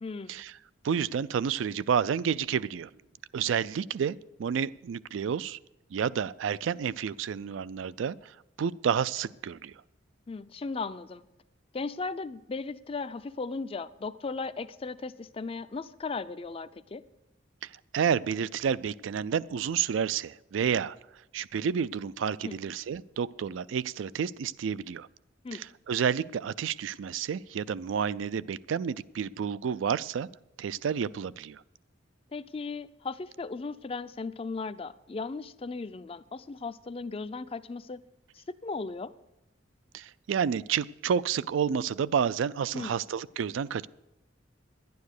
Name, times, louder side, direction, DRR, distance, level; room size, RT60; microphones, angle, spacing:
voice 1, 0.0-0.3 10.3-11.3 11.7-17.0 22.4-22.6 25.4-25.6 32.3-38.0 38.3-39.1 42.7-42.9, left 4 dB, 30° left, 14 dB, 0.4 m, -36 dB
voice 2, 0.8-2.9 3.3-5.6 5.9-9.7 17.6-21.0 21.3-25.1 25.5-30.3 30.6-31.6 39.9-43.9, right 7 dB, 75° right, 19 dB, 0.3 m, -30 dB
11.5 x 9.5 x 6.6 m, 0.91 s
head